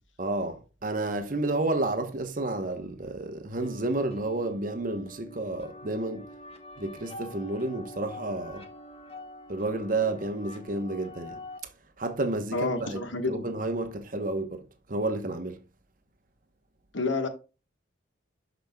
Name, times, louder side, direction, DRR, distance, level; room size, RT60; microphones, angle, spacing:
voice 1, 0.2-6.3 6.8-8.6 9.5-11.4 12.0-13.0 13.3-14.6 14.9-15.6, right 2 dB, 45° right, 1.0 m, -30 dB
sound 1, 3.6-11.6, left 1 dB, 30° left, 0.9 m, -45 dB
voice 2, 12.5-13.5 16.9-17.3, left 3 dB, 80° left, 1.3 m, -29 dB
12.0 x 5.1 x 2.3 m
head